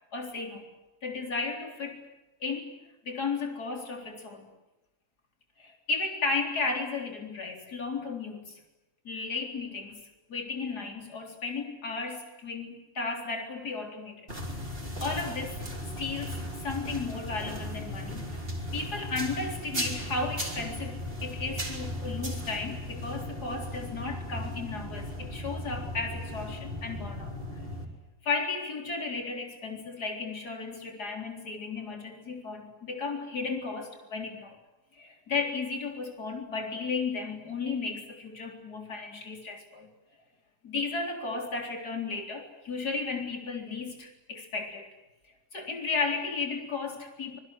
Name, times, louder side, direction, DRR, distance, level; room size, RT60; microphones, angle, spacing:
voice 1, 0.1-0.7 1.0-2.0 2.4-2.7 3.0-4.5 5.6-8.6 9.0-14.3 15.0-15.6 16.0-18.3 18.7-27.3 28.2-34.6 34.9-39.9 40.6-44.9 45.5-47.4, left 4 dB, 75° left, 3 dB, 4.4 m, -34 dB
sound 1, 14.3-27.9, equal, 35° right, 4.5 m, -36 dB
26.0 x 24.0 x 7.9 m, 0.99 s
omnidirectional pair, 1.7 m